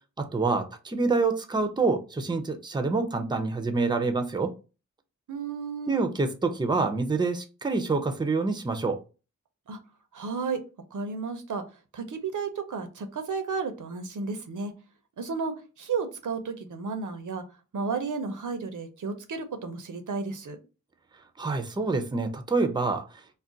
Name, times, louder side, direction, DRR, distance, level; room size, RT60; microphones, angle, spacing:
voice 1, 0.2-4.5 5.9-9.0 21.4-23.0, right 3 dB, 15° right, 0.4 m, -26 dB
voice 2, 5.3-6.1 9.7-9.8 10.1-10.6 10.9-11.6 11.9-14.7 15.2-17.4 17.7-20.6, right 4 dB, 85° right, 0.6 m, -33 dB
2.4 x 2.2 x 3.8 m
wide cardioid pair, 65°, 30 cm